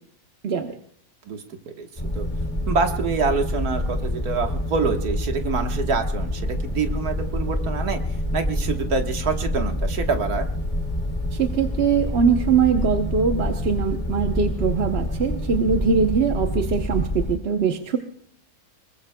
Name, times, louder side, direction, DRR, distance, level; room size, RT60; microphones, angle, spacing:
voice 1, 0.4-0.7 11.3-18.0, right 6 dB, 50° right, 5 dB, 1.0 m, -22 dB
voice 2, 1.3-1.9 2.2-2.3 2.7-8.0 8.3-10.5, right 4 dB, 80° right, 4 dB, 1.9 m, -26 dB
sound 1, 2.0-17.4, left 1 dB, 25° left, 2.1 m, -27 dB
25.0 x 21.5 x 2.2 m, 0.64 s
omnidirectional pair, 1.6 m